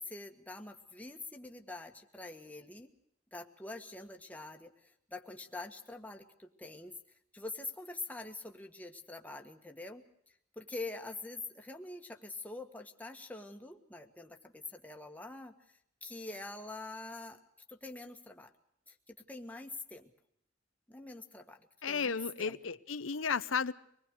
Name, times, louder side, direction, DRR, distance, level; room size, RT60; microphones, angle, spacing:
voice 1, 0.0-2.9 3.3-10.0 10.5-17.4 17.7-18.5 18.9-20.1 20.9-22.6, left 2 dB, 10° left, 1.6 m, -45 dB
voice 2, 21.8-23.7, left 5 dB, 85° left, 0.9 m, -33 dB
25.5 x 20.0 x 6.5 m
head